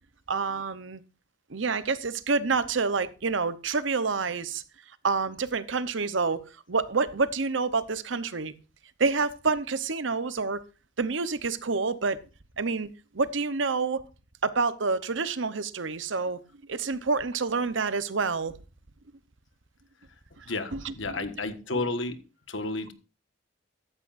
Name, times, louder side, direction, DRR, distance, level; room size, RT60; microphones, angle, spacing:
voice 1, 0.3-1.0 1.5-4.6 5.0-6.4 6.7-8.5 9.0-10.6 11.0-12.2 12.6-12.9 13.1-14.0 14.4-16.4 16.7-18.5 20.4-20.5 20.7-20.9, right 4 dB, 80° right, 0.9 m, -28 dB
voice 2, 20.5-22.2 22.5-22.9, left 2 dB, 85° left, 1.5 m, -31 dB
14.5 x 12.5 x 2.6 m
head